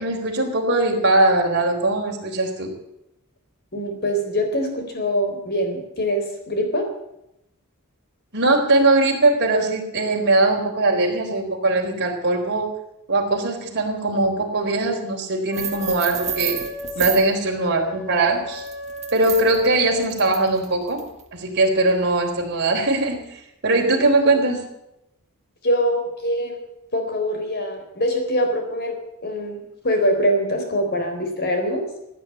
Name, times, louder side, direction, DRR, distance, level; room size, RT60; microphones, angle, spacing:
voice 1, 0.0-2.7 8.3-12.7 13.1-16.6 17.0-18.7 19.1-21.0 21.3-23.2 23.6-24.6, right 2 dB, 50° right, 0 dB, 4.1 m, -20 dB
voice 2, 3.7-6.9 17.1-17.2 25.6-26.6 26.9-29.0 29.2-31.8, equal, 50° left, 5 dB, 4.0 m, -23 dB
Wind instrument woodwind instrument, 15.5-20.0, left 2 dB, 85° left, 5.1 m, -36 dB
sound 1, 15.5-17.3 18.5-21.2, right 9 dB, 30° right, 1.8 m, -30 dB
16.5 x 9.8 x 8.6 m, 0.83 s
head